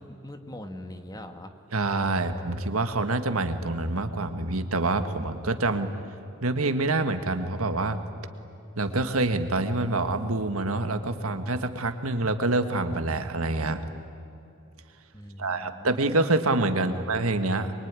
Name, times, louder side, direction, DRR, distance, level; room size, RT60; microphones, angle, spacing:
voice 1, 0.0-1.5 15.1-16.0 16.8-17.0, left 1 dB, 20° left, 6 dB, 1.6 m, -42 dB
voice 2, 1.7-5.9 6.4-8.0 8.8-13.8 15.4-17.7, right 2 dB, 90° right, 8 dB, 1.7 m, -26 dB
24.5 x 23.0 x 9.7 m, 2.6 s
head